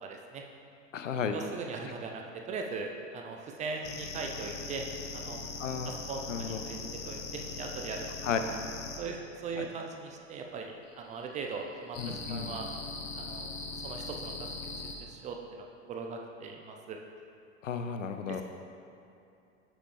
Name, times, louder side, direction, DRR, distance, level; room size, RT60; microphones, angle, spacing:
voice 1, 0.0-0.4 1.3-4.8 5.1-5.4 5.9-6.8 7.0-8.1 9.0-12.7 13.1-13.5 13.8-14.5 15.0-17.0 18.3-18.4, right 4 dB, 20° right, 2 dB, 0.4 m, -40 dB
voice 2, 0.9-1.4 5.6-5.9 6.3-6.6 8.2-8.4 9.6-9.7 12.0-12.6 17.6-18.4, left 7 dB, 75° left, 7 dB, 0.6 m, -33 dB
sound 1, 3.8-9.0 11.9-14.9, left 3 dB, 40° left, 0.9 m, -40 dB
6.5 x 5.9 x 3.2 m, 2.7 s
figure-of-eight pair, 85°, 38 cm